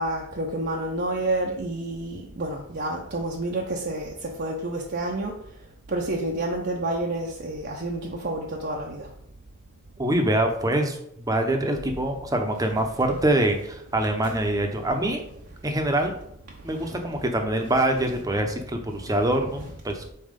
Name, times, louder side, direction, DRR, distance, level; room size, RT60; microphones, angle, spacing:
voice 1, 0.0-4.1 4.4-5.3 5.9-9.0, right 2 dB, 50° right, -1 dB, 0.7 m, -29 dB
voice 2, 10.0-15.2 15.6-16.1 16.6-20.1, right 1 dB, 15° right, 4 dB, 0.8 m, -24 dB
5.4 x 4.3 x 5.2 m, 0.71 s
head